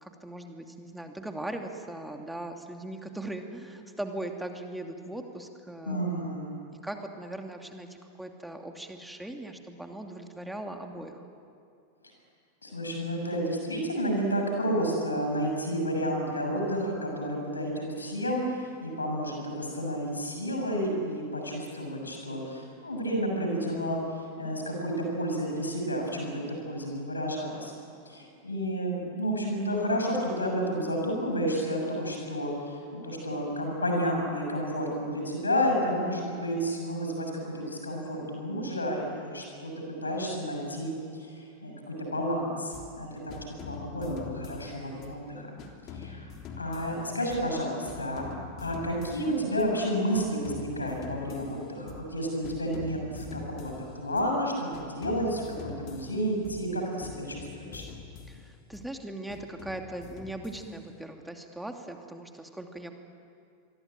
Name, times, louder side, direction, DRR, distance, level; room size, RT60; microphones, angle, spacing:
voice 1, 0.0-6.3 6.8-11.2 58.3-62.9, right 1 dB, 5° right, 4 dB, 2.6 m, -39 dB
voice 2, 5.9-6.5 12.6-24.0 24.4-27.7 28.0-39.7 40.0-45.5 45.9-46.3 46.6-48.2 48.6-57.8, equal, 80° left, 1 dB, 6.6 m, -31 dB
sound 1, 42.7-43.0 43.3-45.2 45.6-47.6 47.9-49.8 50.1-52.2 52.4-54.4 54.7-56.7 57.0-58.9 59.3-61.0, left 5 dB, 40° left, 3.4 m, -45 dB
27.5 x 23.0 x 9.1 m, 2.5 s
figure-of-eight pair, 90°, 0 cm